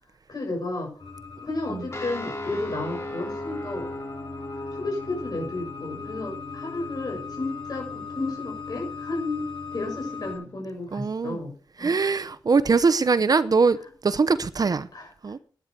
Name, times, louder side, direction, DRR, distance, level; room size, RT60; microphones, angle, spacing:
voice 1, 0.3-0.9 1.4-3.9 4.5-11.5 11.8-11.9 14.9-15.1, left 2 dB, 50° left, 7.1 m, -32 dB
sound 1, 1.0-10.4, left 5 dB, 85° left, 6.7 m, -39 dB
sound 2, 1.9-10.9, left 1 dB, 30° left, 3.1 m, -39 dB
voice 2, 10.9-11.4 11.8-13.8 14.0-14.9 15.2-15.4, right 4 dB, 50° right, 0.7 m, -22 dB
11.5 x 9.7 x 6.7 m
wide cardioid pair, 120°, 8 cm